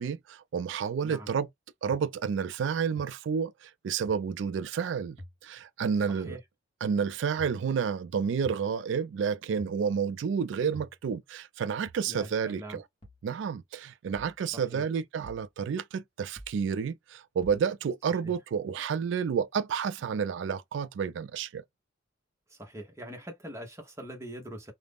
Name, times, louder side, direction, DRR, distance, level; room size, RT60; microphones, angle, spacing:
voice 1, 0.0-1.5 1.8-5.2 5.4-6.4 6.8-12.8 13.2-21.6, right 6 dB, 70° right, 0.3 m, -30 dB
voice 2, 1.0-1.3 6.1-6.4 12.1-12.8 14.5-14.9 18.2-18.3 22.5-24.7, equal, 15° right, 0.8 m, -43 dB
sound 1, 1.9-2.0 3.0-3.1 4.1-4.2 5.2-5.3 6.3-6.4 7.4-7.6 8.4-8.7 9.6-9.8 10.7-11.0 11.9-12.1 13.0-13.2 14.2-14.4 15.2-15.5 16.4-16.6 17.4-17.6, equal, 30° left, 0.9 m, -46 dB
2.4 x 2.0 x 3.4 m
head